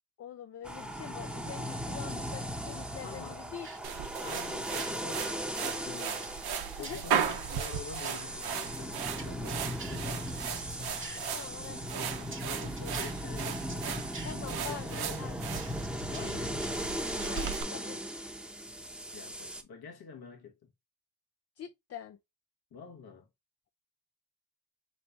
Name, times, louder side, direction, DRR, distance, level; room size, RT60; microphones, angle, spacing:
voice 1, 0.2-3.7 6.8-7.2 11.3-12.3 14.2-15.3 17.2-18.0 21.6-22.2, left 8 dB, 40° left, 0.4 m, -45 dB
sound 1, 0.6-19.6, equal, 5° right, 0.8 m, -38 dB
voice 2, 3.0-3.5 4.2-6.3 6.8-10.3 12.4-14.1 14.4-15.3 16.1-16.8 19.1-20.7 22.7-23.3, left 6 dB, 75° left, 1.1 m, -47 dB
sound 2, 3.6-5.0 6.2-8.2 9.2-11.2 12.3-14.3 15.5-17.6, right 4 dB, 35° right, 1.1 m, -48 dB
sound 3, 3.8-17.6, right 8 dB, 80° right, 0.7 m, -37 dB
3.9 x 3.1 x 3.4 m
cardioid pair, 70°, 37 cm